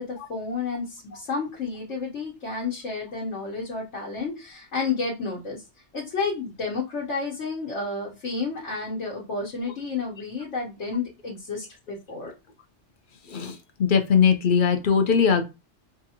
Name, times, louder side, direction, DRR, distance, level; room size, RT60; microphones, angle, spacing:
voice 1, 0.0-5.6 5.9-12.3, left 4 dB, 80° left, -3 dB, 1.3 m, -31 dB
voice 2, 13.3-15.4, left 6 dB, 55° left, 7 dB, 0.7 m, -20 dB
4.6 x 2.4 x 2.8 m, 0.26 s
omnidirectional pair, 1.2 m